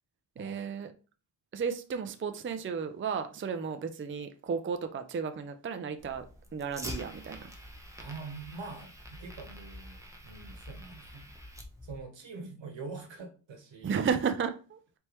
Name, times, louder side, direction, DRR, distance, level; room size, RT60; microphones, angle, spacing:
voice 1, 0.4-0.9 1.5-6.3 6.5-7.5 13.8-15.0, right 6 dB, 30° right, 0.4 m, -33 dB
Fire, 6.0-12.0, equal, 5° right, 0.8 m, -46 dB
voice 2, 8.0-11.3 11.8-14.0, right 4 dB, 80° right, 1.3 m, -44 dB
4.3 x 3.5 x 3.0 m
wide cardioid pair, 100°, 44 cm